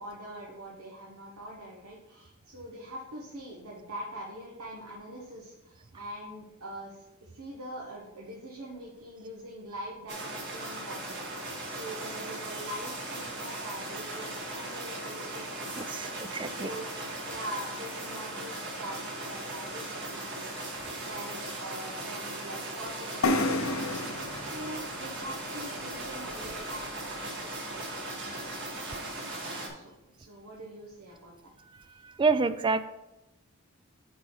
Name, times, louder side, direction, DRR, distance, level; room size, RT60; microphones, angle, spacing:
voice 1, 0.0-7.1 7.3-16.9 17.2-29.9 30.2-31.5 31.8-32.0, right 1 dB, 90° right, -3 dB, 1.3 m, -44 dB
sound 1, 10.1-29.7, right 2 dB, 55° right, 1.8 m, -38 dB
voice 2, 15.8-16.7 32.0-32.9, right 4 dB, 20° right, 13 dB, 0.3 m, -28 dB
sound 2, 23.2-26.9, left 2 dB, 65° left, 0.7 m, -32 dB
8.3 x 4.1 x 4.9 m, 0.96 s
head